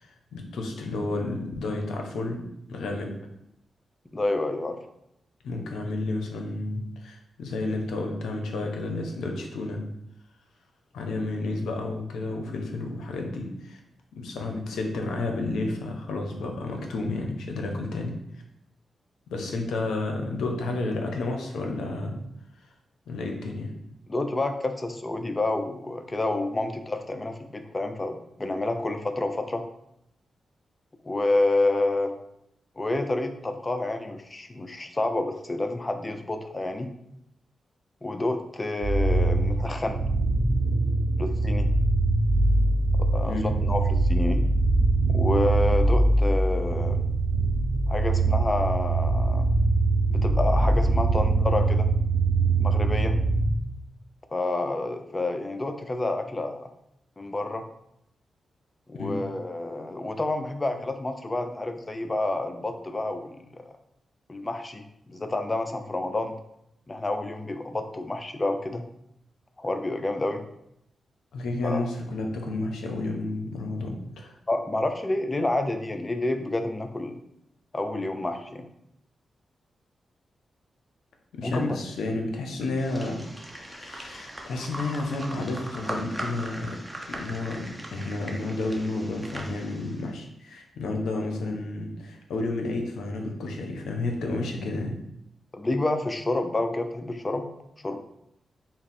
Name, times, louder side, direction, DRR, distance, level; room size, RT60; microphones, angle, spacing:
voice 1, 0.0-3.1 5.4-9.8 10.9-13.8 14.1-18.2 19.3-22.2 23.1-23.7 43.2-43.5 58.9-59.2 71.3-74.3 81.3-83.2 83.5-86.8 87.1-95.0, left 2 dB, 85° left, 2 dB, 0.6 m, -31 dB
voice 2, 4.1-4.8 24.1-29.6 31.0-32.1 32.8-36.9 38.0-40.0 41.2-41.7 43.0-44.4 45.1-47.0 47.9-49.5 50.1-51.9 52.6-53.1 54.3-56.7 57.2-57.6 58.9-63.6 64.3-66.3 66.9-68.8 69.6-70.4 71.6-71.8 74.5-77.2 77.7-78.7 81.4-81.8 95.5-97.5 97.8-98.0, left 2 dB, 30° left, 7 dB, 0.5 m, -29 dB
sound 1, 38.8-53.5, right 2 dB, 65° right, 0.4 m, -23 dB
sound 2, 82.8-90.1, right 1 dB, 10° right, 0.8 m, -39 dB
3.6 x 2.0 x 4.2 m, 0.79 s
cardioid pair, 50°, 0 cm